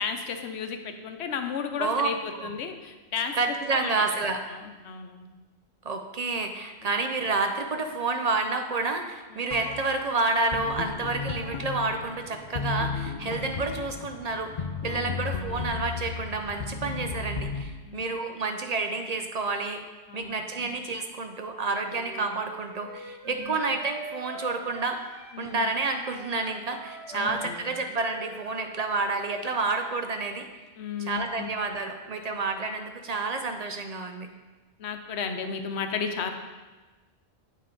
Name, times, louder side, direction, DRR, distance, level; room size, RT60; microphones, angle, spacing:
voice 1, 0.0-3.4 3.7-4.0 4.5-5.3 6.8-6.9 9.3-9.4 13.2-13.5 14.9-15.2 17.8-18.1 20.1-20.3 20.6-20.7 23.3-23.5 25.3-25.7 27.1-27.6 30.8-31.5 34.8-36.3, left 6 dB, 85° left, 6 dB, 0.9 m, -34 dB
voice 2, 3.3-4.4 5.8-19.8 20.1-25.0 25.4-30.5 31.0-34.3, right 3 dB, 50° right, 5 dB, 0.5 m, -29 dB
sound 1, 9.5-17.6, left 4 dB, 50° left, 0.6 m, -34 dB
Wind instrument woodwind instrument, 21.9-25.4 25.7-29.5, right 2 dB, 80° right, 1.8 m, -44 dB
8.3 x 5.5 x 3.8 m, 1.2 s
omnidirectional pair, 1.1 m